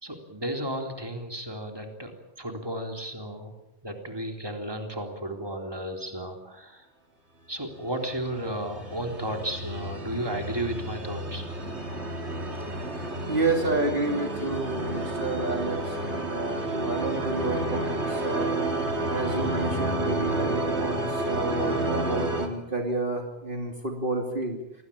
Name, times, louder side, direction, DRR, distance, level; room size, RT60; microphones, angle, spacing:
voice 1, 0.0-2.1 2.4-3.5 3.8-6.9 7.5-11.7, right 1 dB, 20° right, 4 dB, 3.8 m, -34 dB
sound 1, 8.1-22.5, right 2 dB, 75° right, 3.3 m, -30 dB
voice 2, 12.5-18.8 19.1-24.6, right 2 dB, 50° right, 3 dB, 3.2 m, -30 dB
28.0 x 20.5 x 8.8 m, 0.85 s
omnidirectional pair, 1.2 m